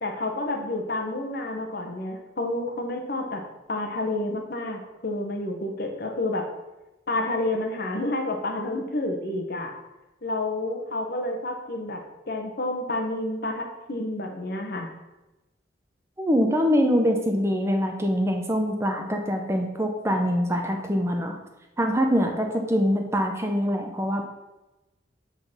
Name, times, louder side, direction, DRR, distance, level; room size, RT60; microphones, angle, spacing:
voice 1, 0.0-3.4 3.7-6.5 7.1-9.7 10.2-14.9, left 2 dB, 50° left, 3 dB, 1.1 m, -29 dB
voice 2, 16.2-21.4 21.8-24.3, equal, 15° right, 3 dB, 0.7 m, -24 dB
7.5 x 4.0 x 5.9 m, 1.0 s
head